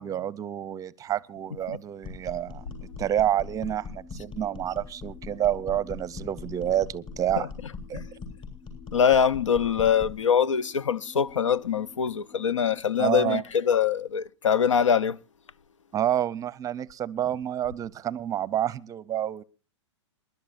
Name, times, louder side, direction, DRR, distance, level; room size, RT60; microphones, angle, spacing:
voice 1, 0.0-7.5 7.9-8.0 13.0-13.4 15.9-19.4, right 11 dB, 20° right, 0.6 m, -28 dB
sound 1, 2.0-10.2, left 4 dB, 35° left, 6.7 m, -41 dB
sound 2, 2.6-12.8, left 4 dB, 65° left, 2.0 m, -51 dB
voice 2, 8.9-15.2, left 7 dB, 90° left, 0.7 m, -23 dB
27.0 x 11.5 x 2.5 m
hypercardioid pair, 115°, 15 cm